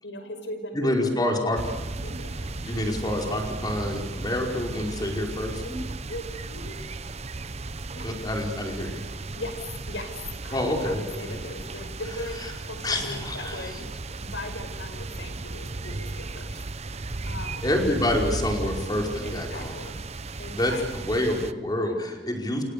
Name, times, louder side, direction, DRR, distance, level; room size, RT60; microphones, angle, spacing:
voice 1, 0.0-1.2 2.0-2.3 2.6-2.7 5.6-6.8 7.9-8.1 9.2-9.6 9.9-10.1 10.4-16.6 16.9-17.0 17.3-17.8 19.2-20.0 20.4-21.0, left 1 dB, 80° left, 7 dB, 6.0 m, -39 dB
voice 2, 0.7-1.6 2.6-5.6 8.0-9.0 10.5-11.0 11.3-11.4 12.8-13.7 17.6-19.7 20.5-20.7 21.0-22.6, left 1 dB, 20° left, 1 dB, 5.0 m, -27 dB
sound 1, 1.5-21.5, right 3 dB, 35° right, 0.9 m, -35 dB
29.0 x 28.5 x 6.9 m, 1.1 s
head